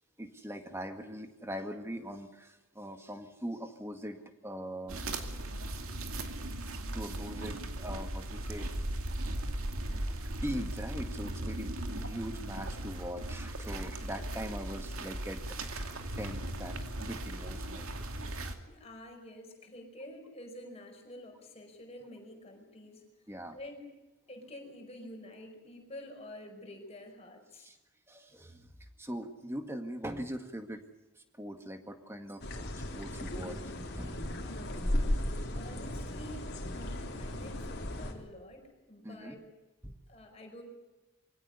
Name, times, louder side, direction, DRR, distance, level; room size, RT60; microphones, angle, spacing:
voice 1, 0.2-5.0 6.9-8.7 9.8-15.6 16.2-17.9 23.3-23.6 27.6-27.8 28.1-28.7 29.0-30.8 31.2-32.7 32.9-33.6 33.9-34.5 39.0-39.4 39.8-39.9, equal, 10° right, 6 dB, 1.9 m, -41 dB
sound 1, 4.9-18.5, right 1 dB, 70° right, 2.4 m, -38 dB
voice 2, 18.7-23.0 23.5-23.8 24.3-27.7 35.6-36.5 36.7-39.4 40.1-40.6, left 1 dB, 30° left, 3 dB, 5.3 m, -48 dB
sound 2, 32.4-38.1, left 1 dB, 45° left, 3.5 m, -35 dB
23.0 x 17.0 x 9.8 m, 1.1 s
head